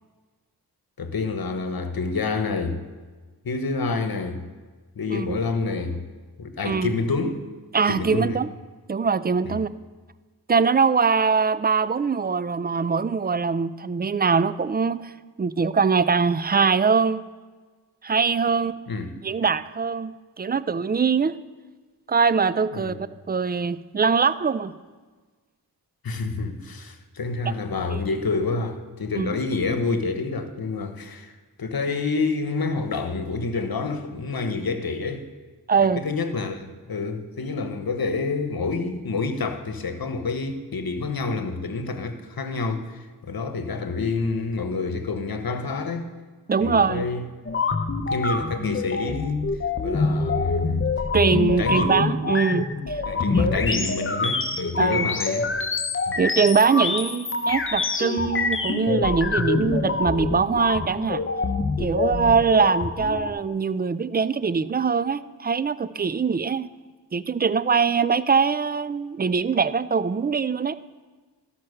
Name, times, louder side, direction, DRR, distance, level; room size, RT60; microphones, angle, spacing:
voice 1, 1.0-2.8 3.4-4.5 5.0-6.0 6.4-7.5 7.9-8.4 9.4-9.6 18.9-19.1 22.7-23.0 26.0-31.3 31.6-35.3 35.8-46.1 46.6-47.2 48.1-49.4 49.8-50.9 51.6-52.0 53.0-55.5 56.1-56.2, left 4 dB, 60° left, 1.2 m, -28 dB
voice 2, 6.6-7.0 7.7-8.5 8.9-9.7 10.5-15.1 15.4-17.2 18.0-18.7 19.2-21.3 22.1-22.9 23.3-24.7 27.9-28.0 29.1-29.3 35.7-36.0 46.5-47.0 51.1-53.0 53.3-53.8 54.8-55.1 56.2-61.2 61.8-66.7 67.1-70.8, right 5 dB, 25° right, 0.4 m, -22 dB
sound 1, 47.4-63.3, left 3 dB, 30° left, 0.9 m, -26 dB
13.0 x 5.8 x 6.5 m
cardioid pair, 50°, 40 cm